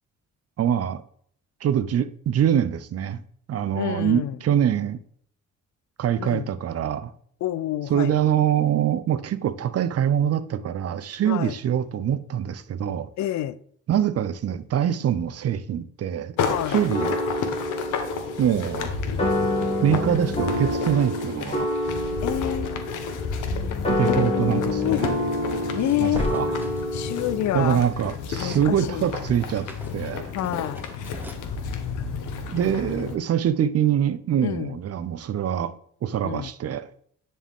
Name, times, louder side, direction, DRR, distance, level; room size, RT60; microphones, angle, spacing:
voice 1, 0.6-1.0 1.6-3.2 3.5-5.0 6.0-7.1 7.9-13.1 13.9-16.4 16.7-17.1 18.4-18.9 19.8-21.7 23.9-25.1 26.0-26.5 27.5-29.7 29.9-30.2 32.5-35.7 36.0-36.8, right 9 dB, 55° right, 0.7 m, -24 dB
voice 2, 3.7-4.4 6.2-6.5 7.4-8.2 11.3-11.6 13.2-13.6 16.5-16.8 22.2-22.9 24.0-25.3 25.7-26.3 26.9-27.9 28.4-29.1 30.3-30.8 34.4-34.8 36.2-36.5, left 13 dB, 70° left, 0.6 m, -28 dB
sound 1, 16.4-33.2, left 6 dB, 85° left, 1.1 m, -31 dB
sound 2, 16.9-27.6, left 1 dB, 20° left, 2.5 m, -28 dB
sound 3, 25.8-28.7 29.1-31.5, right 1 dB, 5° right, 1.3 m, -44 dB
10.0 x 4.3 x 3.6 m
cardioid pair, 90°, 30 cm